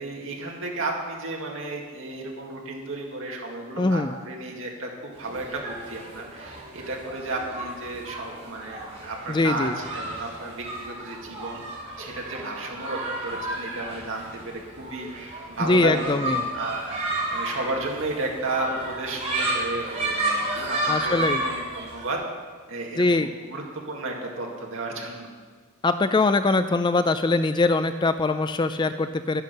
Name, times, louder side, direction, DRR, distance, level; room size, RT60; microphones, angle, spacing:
voice 1, 0.0-11.6 12.0-22.2 22.7-25.3, right 2 dB, 60° right, 0 dB, 2.1 m, -33 dB
voice 2, 3.8-4.1 9.3-9.8 15.6-16.4 20.9-21.4 23.0-23.3 25.8-29.4, left 3 dB, 20° left, 10 dB, 0.4 m, -22 dB
sound 1, 5.2-22.1, right 1 dB, 30° right, 4.0 m, -32 dB
10.5 x 10.0 x 6.7 m, 1.5 s
head